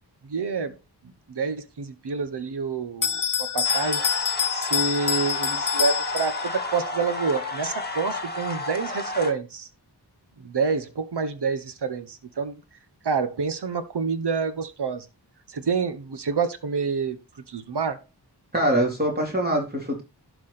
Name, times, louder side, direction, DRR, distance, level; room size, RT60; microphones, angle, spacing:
voice 1, 0.2-0.8 1.3-4.0 4.5-9.7 10.4-12.6 13.0-15.1 15.5-17.2 17.5-18.0, right 5 dB, 75° right, 1.2 m, -28 dB
Bell, 3.0-6.7, left 7 dB, 50° left, 0.9 m, -26 dB
sound 1, 3.6-9.3, left 2 dB, 25° left, 1.8 m, -31 dB
voice 2, 18.5-20.0, right 1 dB, 25° right, 3.5 m, -23 dB
12.0 x 4.8 x 4.2 m
wide cardioid pair, 90°, 41 cm